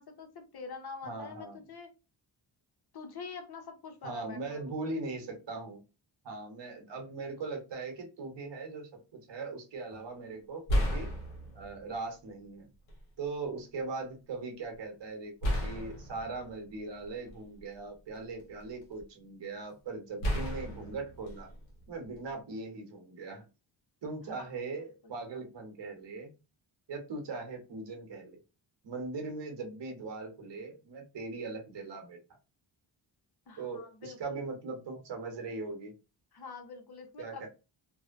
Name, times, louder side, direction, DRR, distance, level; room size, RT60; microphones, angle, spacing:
voice 1, 0.0-1.9 2.9-4.6 24.3-24.6 25.0-25.1 33.5-34.2 36.3-37.5, left 4 dB, 55° left, 5 dB, 0.8 m, -45 dB
voice 2, 1.0-1.6 4.0-5.8 6.2-11.1 11.5-12.7 13.2-21.5 21.9-23.4 24.0-26.3 26.9-28.4 28.8-32.2 33.6-35.9 37.2-37.5, right 3 dB, 65° right, 3 dB, 1.0 m, -40 dB
sound 1, 9.9-10.1 10.7-12.0 12.9-13.0 15.4-17.6 18.2-19.0 20.2-22.3, equal, 80° left, 0.9 m, -34 dB
2.7 x 2.1 x 2.5 m, 0.30 s
cardioid pair, 65°, 47 cm